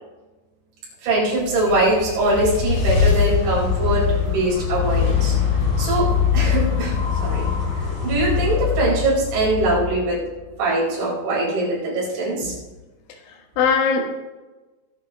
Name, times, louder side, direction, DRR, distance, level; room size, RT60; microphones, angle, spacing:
voice 1, 1.0-5.3 5.8-6.1 6.3-6.9 7.2-7.4 8.0-10.2 10.6-12.5, right 2 dB, 65° right, -5 dB, 6.8 m, -22 dB
sound 1, 1.2-10.5, left 6 dB, 40° left, 5.0 m, -22 dB
voice 2, 13.1-14.2, left 5 dB, 90° left, 2 dB, 4.0 m, -22 dB
21.5 x 10.5 x 3.0 m, 1.2 s
omnidirectional pair, 5.5 m